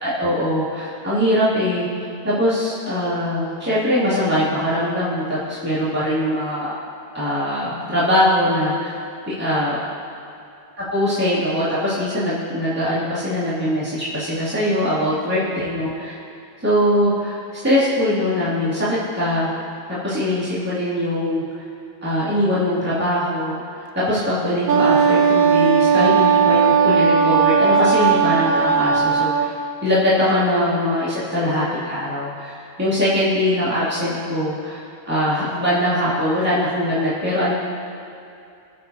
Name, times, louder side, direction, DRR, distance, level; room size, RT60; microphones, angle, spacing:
voice 1, 0.0-6.7 7.1-8.9 9.3-9.8 10.8-16.2 16.6-19.5 19.9-21.4 22.0-23.6 23.9-29.5 29.8-34.8 35.1-37.5, left 1 dB, 15° right, -14 dB, 2.6 m, -21 dB
Wind instrument woodwind instrument, 24.7-29.5, right 6 dB, 55° right, 0.9 m, -16 dB
20.0 x 7.8 x 2.8 m, 2.7 s
omnidirectional pair, 1.2 m